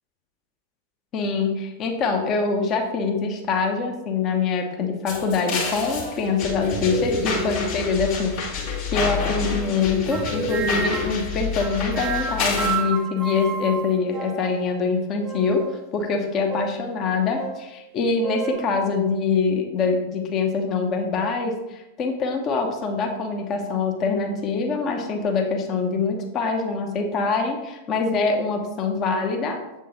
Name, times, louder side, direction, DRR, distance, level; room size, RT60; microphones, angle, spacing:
voice 1, 1.1-15.6 15.9-29.5, left 4 dB, 30° left, 3 dB, 0.9 m, -24 dB
sound 1, 5.1-12.8, left 4 dB, 45° left, 1.9 m, -28 dB
sound 2, 10.1-11.2 11.6-14.7 15.2-15.8 16.5-16.9 17.4-17.6 18.2-18.6, right 6 dB, 25° right, 0.7 m, -31 dB
7.5 x 3.7 x 4.0 m, 0.96 s
figure-of-eight pair, 90°, 0 cm